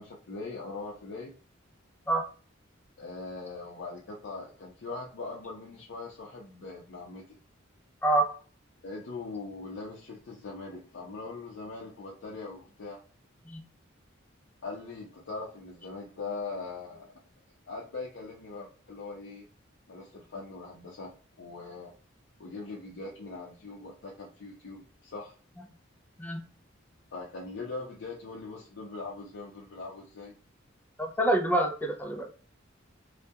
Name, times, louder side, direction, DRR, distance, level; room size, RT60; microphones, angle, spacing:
voice 1, 0.0-1.3 3.0-7.4 8.8-13.0 14.6-17.1 17.7-19.5 19.9-21.9 22.4-25.3 27.1-30.4, left 3 dB, 60° left, -4 dB, 0.5 m, -41 dB
voice 2, 31.0-32.3, right 1 dB, 10° left, 4 dB, 0.3 m, -26 dB
2.2 x 2.1 x 2.7 m, 0.40 s
head